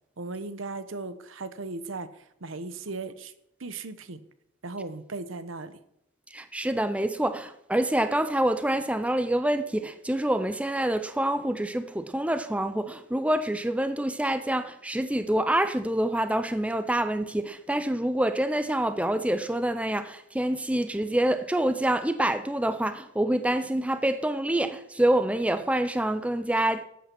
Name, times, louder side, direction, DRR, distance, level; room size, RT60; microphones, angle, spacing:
voice 1, 0.2-2.1 2.4-3.3 3.6-4.2 4.6-5.8, right 3 dB, 80° right, 1.0 m, -37 dB
voice 2, 6.3-26.8, right 1 dB, 5° right, 0.5 m, -26 dB
13.0 x 8.5 x 6.1 m
head